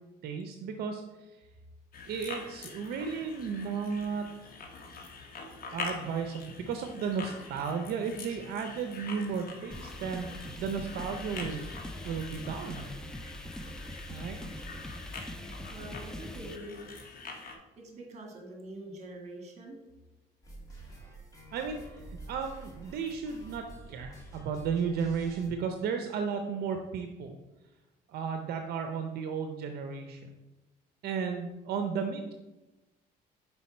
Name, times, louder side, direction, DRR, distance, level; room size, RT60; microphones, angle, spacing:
voice 1, 0.2-1.5 2.1-4.3 5.7-11.7 12.0-12.9 14.1-14.4 21.5-21.8 22.3-27.4 28.1-30.2 31.0-32.3, right 6 dB, 70° right, 5 dB, 0.5 m, -34 dB
sound 1, 1.9-17.6, left 4 dB, 60° left, 1.0 m, -45 dB
sound 2, 9.7-16.6, equal, 5° left, 0.3 m, -43 dB
voice 2, 15.7-16.9 17.8-19.8, right 1 dB, 40° right, 1 dB, 1.5 m, -44 dB
sound 3, 20.4-25.5, right 2 dB, 20° left, 1.9 m, -48 dB
5.5 x 4.5 x 4.2 m, 1.1 s
cardioid pair, 110°, 17 cm